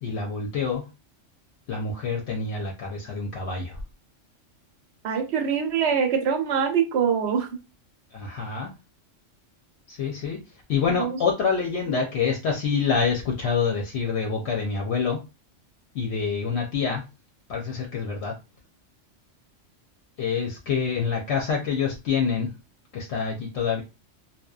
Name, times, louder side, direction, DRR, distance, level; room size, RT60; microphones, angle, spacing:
voice 1, 0.0-0.8 1.7-3.8 8.1-8.7 9.9-10.4 10.7-15.2 15.9-17.0 17.5-18.3 20.2-22.5 22.9-23.8, left 5 dB, 65° left, 1 dB, 0.8 m, -26 dB
voice 2, 5.0-7.5 11.0-11.2, right 7 dB, 65° right, 4 dB, 0.8 m, -24 dB
2.7 x 2.2 x 2.3 m, 0.28 s
omnidirectional pair, 1.3 m